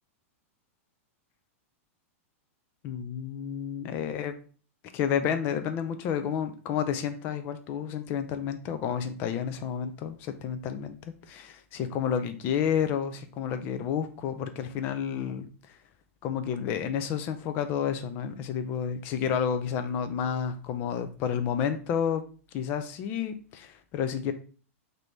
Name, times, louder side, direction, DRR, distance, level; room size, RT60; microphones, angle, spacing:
voice 1, 2.8-4.3 4.9-15.5 16.2-22.2 22.5-24.3, left 8 dB, 25° left, 9 dB, 0.4 m, -30 dB
3.4 x 2.6 x 4.3 m, 0.40 s
supercardioid pair, 165°, 8 cm